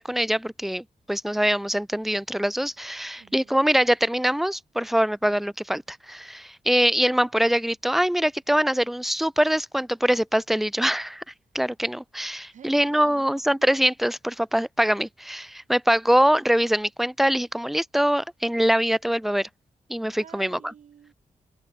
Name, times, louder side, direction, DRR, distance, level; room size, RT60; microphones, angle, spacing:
voice 1, 0.0-11.2 11.5-19.5 19.9-20.7, equal, ahead, 1.1 m, -23 dB
voice 2, 3.2-3.6 12.5-13.3 20.1-21.1, right 8 dB, 75° right, 3.5 m, -49 dB
open air
wide cardioid pair, 150°, 13 cm